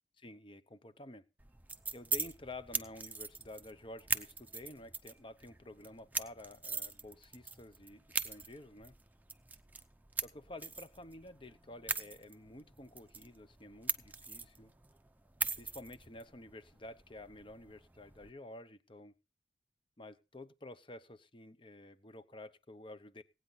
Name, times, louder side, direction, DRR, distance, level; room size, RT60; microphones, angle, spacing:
voice 1, 0.2-1.2 1.9-8.9 10.2-14.7 15.6-19.1 20.0-23.2, left 1 dB, 30° left, 0.8 m, -51 dB
sound 1, 1.4-18.3, right 4 dB, 10° right, 0.7 m, -42 dB
17.5 x 9.2 x 4.0 m
head